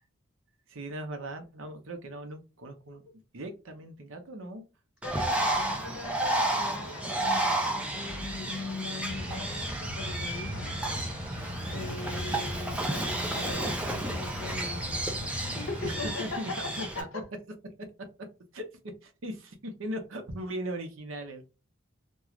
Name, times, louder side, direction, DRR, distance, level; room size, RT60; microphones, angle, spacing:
voice 1, 0.7-3.0 3.3-4.6 11.7-12.0 15.8-17.2 17.8-17.9 18.5-21.4, right 1 dB, 75° right, 0.7 m, -39 dB
voice 2, 5.0-10.7 11.7-17.2, left 3 dB, 75° left, 0.6 m, -40 dB
Bird, 5.0-17.0, right 1 dB, 5° right, 0.4 m, -32 dB
Boat Water vehicle, 5.7-13.5, equal, 40° left, 0.9 m, -50 dB
sound 1, 9.1-16.1, equal, 40° right, 0.8 m, -38 dB
2.4 x 2.3 x 3.0 m
head